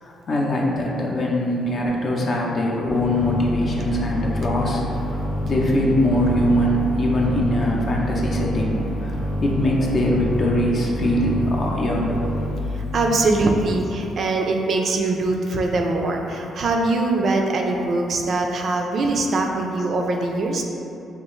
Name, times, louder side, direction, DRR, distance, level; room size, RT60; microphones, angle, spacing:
voice 1, 0.0-12.2, left 1 dB, 50° left, -2 dB, 0.5 m, -22 dB
sound 1, 2.9-13.2, left 1 dB, 80° left, 0.8 m, -27 dB
voice 2, 12.9-20.6, right 2 dB, 55° right, 2 dB, 0.3 m, -22 dB
3.3 x 2.4 x 3.0 m, 2.7 s
cardioid pair, 90°, 0 cm